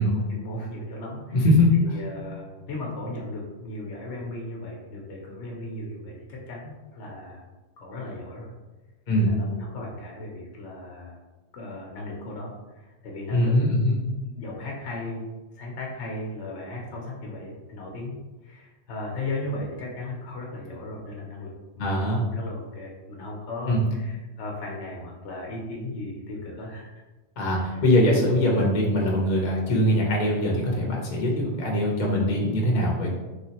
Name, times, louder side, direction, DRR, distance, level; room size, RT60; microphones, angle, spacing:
voice 1, 0.0-1.5 1.8-7.4 7.8-8.5 9.2-11.2 11.5-13.6 14.2-15.3 15.5-18.1 18.4-26.9 27.6-27.8, left 1 dB, 85° left, -2 dB, 1.0 m, -36 dB
voice 2, 1.3-1.9 9.1-9.3 13.3-14.0 21.8-22.2 23.7-23.8 27.4-33.1, left 1 dB, 45° left, -2 dB, 0.7 m, -22 dB
3.2 x 3.1 x 2.8 m, 1.2 s
omnidirectional pair, 1.1 m